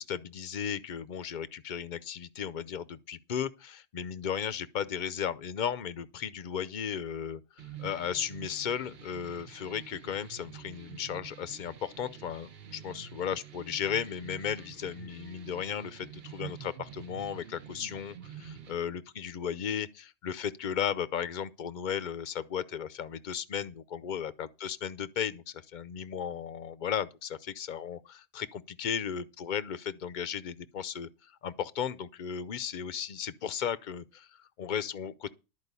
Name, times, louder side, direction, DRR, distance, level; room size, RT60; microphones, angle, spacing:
voice 1, 0.0-7.4 7.8-31.1 31.4-35.3, left 8 dB, 45° left, 0.7 m, -35 dB
sound 1, 7.6-18.7, right 9 dB, 55° right, 1.1 m, -47 dB
13.0 x 4.8 x 8.2 m
omnidirectional pair, 1.3 m